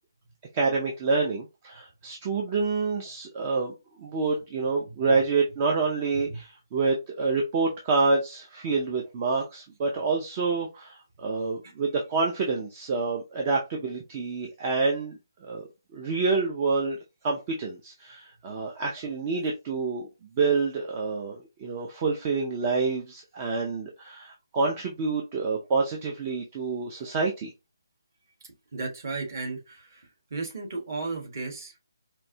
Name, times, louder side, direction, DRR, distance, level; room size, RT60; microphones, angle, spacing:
voice 1, 0.5-15.7 15.9-20.1 20.4-27.5, right 4 dB, 20° right, 0.5 m, -27 dB
voice 2, 28.7-31.8, right 3 dB, 40° right, 1.5 m, -35 dB
4.4 x 2.6 x 2.8 m
hypercardioid pair, 170°, 2 cm